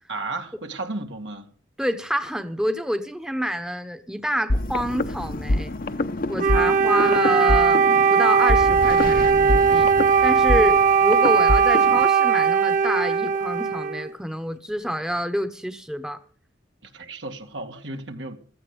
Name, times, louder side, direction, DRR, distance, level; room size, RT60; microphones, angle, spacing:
voice 1, 0.1-1.5 16.8-18.4, right 2 dB, 80° right, 2.2 m, -34 dB
voice 2, 1.8-5.7 6.3-7.8 8.1-9.9 10.2-16.2, equal, 5° right, 1.0 m, -27 dB
sound 1, 4.5-12.1, left 1 dB, 50° left, 0.9 m, -26 dB
Wind instrument woodwind instrument, 6.4-14.1, right 6 dB, 45° right, 0.7 m, -19 dB
16.0 x 15.0 x 5.2 m
head